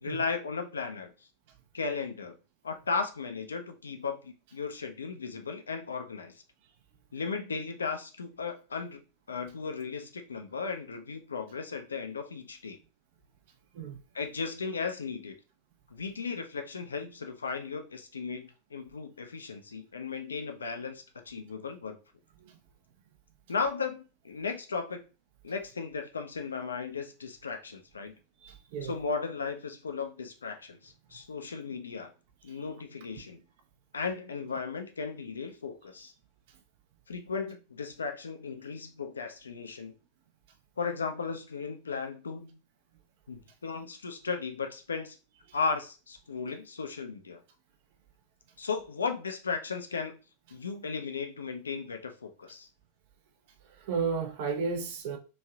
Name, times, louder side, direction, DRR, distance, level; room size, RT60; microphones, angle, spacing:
voice 1, 0.0-1.1 1.7-2.4 2.6-6.3 7.1-9.0 9.3-12.8 14.1-15.4 15.9-22.0 23.5-25.0 25.4-28.1 28.8-32.1 32.4-33.4 33.9-36.1 37.1-39.9 40.8-42.6 43.3-45.2 45.5-47.4 48.6-50.2 50.5-52.7, left 5 dB, 70° left, 0.4 m, -36 dB
voice 2, 28.4-28.9 53.8-55.2, right 5 dB, 50° right, 0.5 m, -33 dB
3.1 x 2.6 x 2.2 m
figure-of-eight pair, 90°, 0 cm